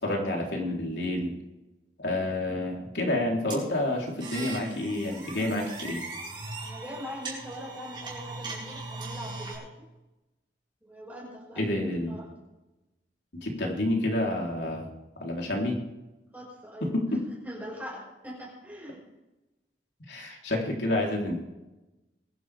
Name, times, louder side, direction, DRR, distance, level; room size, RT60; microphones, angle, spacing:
voice 1, 0.0-1.4 2.0-6.0 11.6-12.2 13.4-14.9 15.2-15.8 16.9-17.2 20.1-21.4, left 1 dB, 85° left, -1 dB, 3.8 m, -29 dB
sound 1, 3.5-9.6, right 3 dB, 25° right, 5.3 m, -39 dB
voice 2, 6.6-9.7 10.8-12.2 16.3-16.9 17.3-19.0, equal, 10° right, -4 dB, 5.6 m, -42 dB
22.5 x 11.5 x 3.6 m, 1.0 s
head